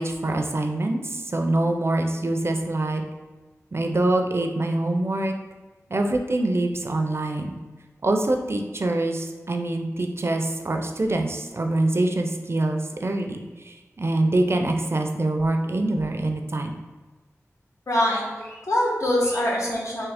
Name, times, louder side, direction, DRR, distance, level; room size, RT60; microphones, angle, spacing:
voice 1, 0.0-3.0 3.7-5.3 5.9-7.6 8.0-16.8, right 2 dB, 50° right, 4 dB, 0.4 m, -25 dB
voice 2, 17.9-20.1, left 1 dB, 65° left, -3 dB, 1.0 m, -24 dB
3.6 x 2.8 x 3.4 m, 1.3 s
wide cardioid pair, 50°, 6 cm